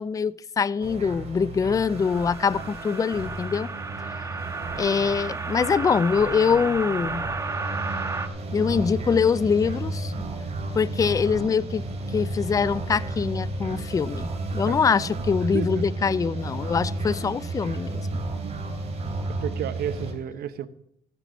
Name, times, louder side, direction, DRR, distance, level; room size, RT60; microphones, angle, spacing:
voice 1, 0.0-3.7 4.8-7.2 8.5-10.1 10.7-11.8 12.1-18.0, left 6 dB, 20° left, 0.4 m, -24 dB
sound 1, 0.8-20.1, right 2 dB, 40° right, 3.4 m, -32 dB
sound 2, 1.7-8.3, right 3 dB, 20° right, 1.3 m, -33 dB
voice 2, 14.7-15.3 15.5-15.8 19.4-20.7, right 9 dB, 65° right, 1.0 m, -32 dB
14.5 x 10.0 x 4.0 m
cardioid pair, 110°, 17 cm